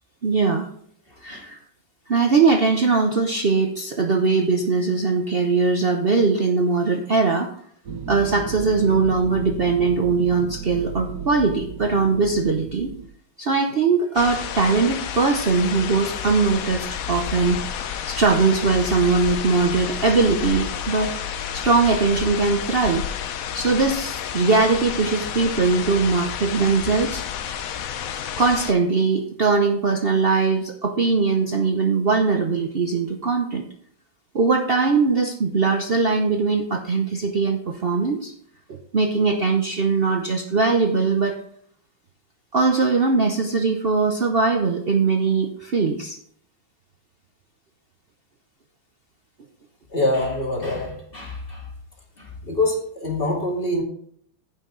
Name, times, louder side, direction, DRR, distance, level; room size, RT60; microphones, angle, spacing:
voice 1, 0.2-0.7 1.2-1.6 2.1-7.5 8.1-12.9 13.4-17.6 18.1-21.1 21.5-23.0 23.5-27.2 28.4-33.6 34.3-38.3 38.7-41.3 42.5-46.2, right 4 dB, 70° right, 3 dB, 0.5 m, -21 dB
sound 1, 7.9-13.1, right 6 dB, 55° right, 1.4 m, -34 dB
sound 2, 14.2-28.7, left 9 dB, 70° left, 0.8 m, -30 dB
voice 2, 49.9-51.6 52.2-53.8, left 1 dB, 25° left, -1 dB, 2.6 m, -25 dB
15.5 x 5.8 x 3.8 m, 0.65 s
omnidirectional pair, 2.2 m